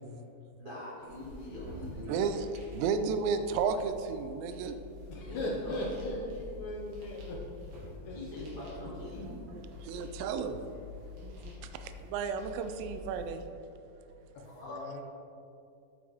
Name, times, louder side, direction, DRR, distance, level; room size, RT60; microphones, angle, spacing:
voice 1, 0.6-2.2 5.2-6.2 8.1-9.5 11.3-11.5 13.7-15.0, left 1 dB, 20° right, -9 dB, 1.3 m, -44 dB
sound 1, 1.0-13.4, left 3 dB, 60° right, 3.4 m, -47 dB
voice 2, 2.0-2.3 2.7-4.8 9.8-10.6 11.2-11.5 11.8-13.4, right 6 dB, 80° right, 9 dB, 2.2 m, -33 dB
voice 3, 5.1-7.4 8.0-8.2 14.3-15.0, left 1 dB, 75° left, -2 dB, 1.8 m, -38 dB
8.8 x 8.7 x 3.6 m, 2.6 s
omnidirectional pair, 4.3 m